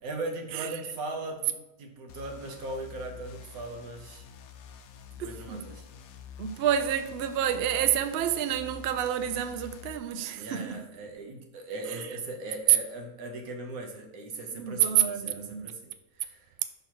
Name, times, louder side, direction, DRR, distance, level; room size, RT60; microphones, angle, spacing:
voice 1, 0.0-4.3 5.2-5.8 10.3-16.5, right 2 dB, 90° right, 1.4 m, -39 dB
sound 1, 2.1-10.0, left 7 dB, 85° left, 1.1 m, -47 dB
voice 2, 5.2-5.6 6.4-10.8 11.9-12.1 14.5-15.7, right 10 dB, 65° right, 0.6 m, -29 dB
5.7 x 4.0 x 4.5 m
omnidirectional pair, 1.5 m